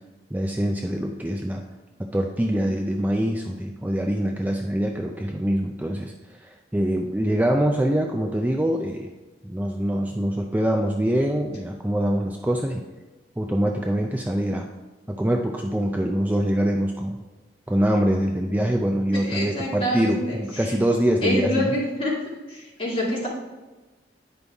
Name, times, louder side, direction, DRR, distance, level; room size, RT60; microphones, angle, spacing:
voice 1, 0.3-1.6 2.0-9.1 9.4-12.9 13.4-14.7 15.1-17.2 17.7-21.7, equal, 10° right, 2 dB, 0.4 m, -24 dB
voice 2, 19.1-20.4 21.2-22.1 22.5-23.3, left 1 dB, 30° left, -5 dB, 2.3 m, -26 dB
9.7 x 5.3 x 3.5 m, 1.2 s
head